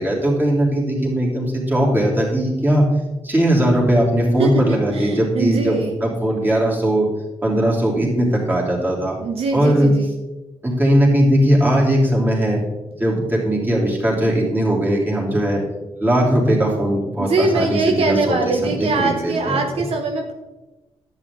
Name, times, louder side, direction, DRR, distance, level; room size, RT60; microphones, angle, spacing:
voice 1, 0.0-2.9 3.2-7.1 7.4-9.2 9.5-9.9 10.6-12.6 13.0-15.6 16.0-19.6, right 1 dB, 15° right, -3 dB, 3.0 m, -19 dB
voice 2, 4.4-6.0 9.2-10.2 17.2-20.3, right 3 dB, 65° right, 3 dB, 0.9 m, -22 dB
10.5 x 8.1 x 3.7 m, 1.1 s
cardioid pair, 100°, 11 cm